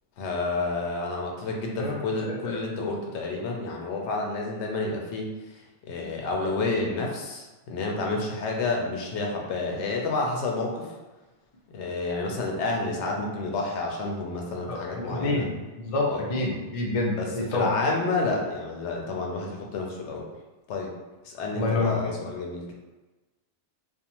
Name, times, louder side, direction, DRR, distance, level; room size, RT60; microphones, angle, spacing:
voice 1, 0.2-5.3 5.9-10.9 11.7-15.5 16.1-16.2 17.2-20.3 20.7-20.9 21.2-22.7, left 3 dB, 80° left, 0 dB, 0.9 m, -30 dB
voice 2, 14.7-15.5 15.8-17.7 21.5-22.0, left 2 dB, 50° left, -2 dB, 0.4 m, -27 dB
2.5 x 2.2 x 2.8 m, 1.2 s
omnidirectional pair, 1.2 m